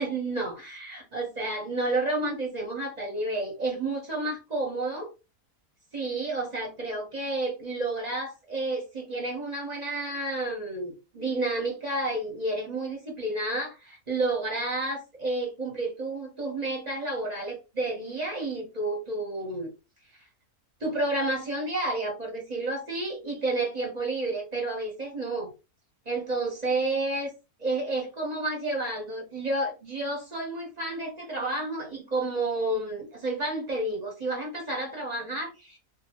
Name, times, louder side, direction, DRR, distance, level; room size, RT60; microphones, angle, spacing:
voice 1, 0.0-5.1 5.9-19.7 20.8-25.5 26.1-27.3 27.6-35.8, right 2 dB, 40° right, 0.7 m, -30 dB
2.6 x 2.5 x 2.8 m
omnidirectional pair, 1.6 m